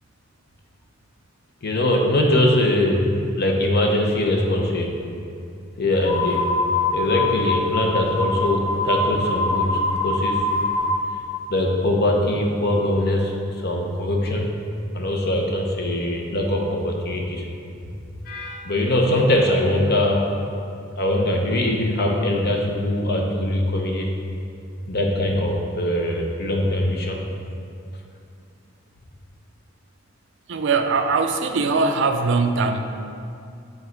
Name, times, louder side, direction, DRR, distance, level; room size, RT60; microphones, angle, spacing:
voice 1, 1.6-3.0 3.4-4.9 5.8-6.5 6.9-10.5 11.5-13.4 13.6-14.5 14.9-17.4 18.3-20.3 21.0-24.1 24.9-27.2, left 1 dB, 55° left, 0 dB, 0.9 m, -22 dB
sound 1, 6.0-11.0, left 2 dB, 20° left, 1.0 m, -24 dB
voice 2, 30.5-32.8, right 4 dB, 65° right, 6 dB, 0.5 m, -21 dB
7.4 x 4.0 x 4.5 m, 2.5 s
head